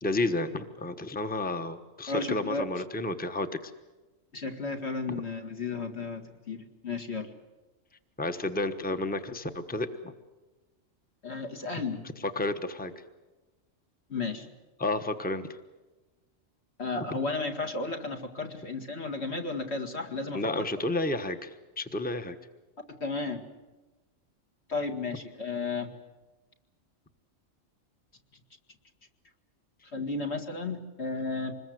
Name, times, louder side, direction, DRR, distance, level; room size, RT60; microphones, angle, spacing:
voice 1, 0.0-3.7 5.1-5.2 8.2-10.1 12.3-12.9 14.8-15.6 17.0-17.2 20.3-22.4, left 2 dB, 5° left, 9 dB, 1.1 m, -31 dB
voice 2, 2.1-2.7 4.3-7.3 11.2-12.0 14.1-14.5 16.8-20.7 23.0-23.4 24.7-25.9 29.9-31.5, left 3 dB, 55° left, 4 dB, 2.3 m, -33 dB
26.0 x 21.0 x 7.8 m, 1.2 s
omnidirectional pair, 1.4 m